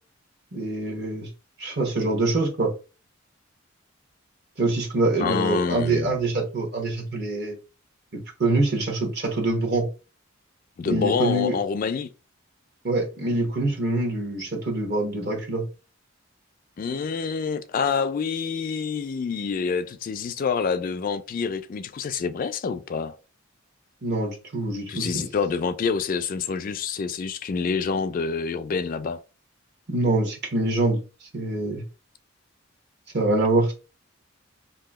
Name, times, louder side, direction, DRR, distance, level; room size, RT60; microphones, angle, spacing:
voice 1, 0.5-1.3 1.6-2.7 4.6-7.6 8.1-9.9 10.8-11.5 12.8-15.7 24.0-25.3 29.9-31.0 31.3-31.8 33.1-33.7, right 2 dB, 55° right, 1.1 m, -25 dB
voice 2, 5.2-6.2 10.8-12.1 16.8-23.1 24.9-29.2, left 5 dB, 45° left, 0.3 m, -27 dB
2.8 x 2.6 x 3.5 m
head